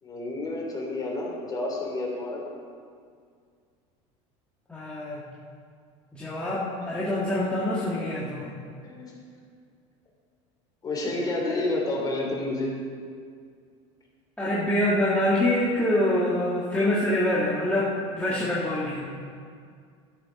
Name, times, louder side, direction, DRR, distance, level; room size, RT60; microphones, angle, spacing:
voice 1, 0.0-2.4 6.8-6.9 8.8-9.1 10.8-12.8, left 2 dB, 25° left, -2 dB, 3.3 m, -30 dB
voice 2, 4.7-5.2 6.1-8.5 14.4-19.1, left 1 dB, 5° left, -8 dB, 1.7 m, -25 dB
12.5 x 6.9 x 5.7 m, 2.2 s
supercardioid pair, 125°, 16 cm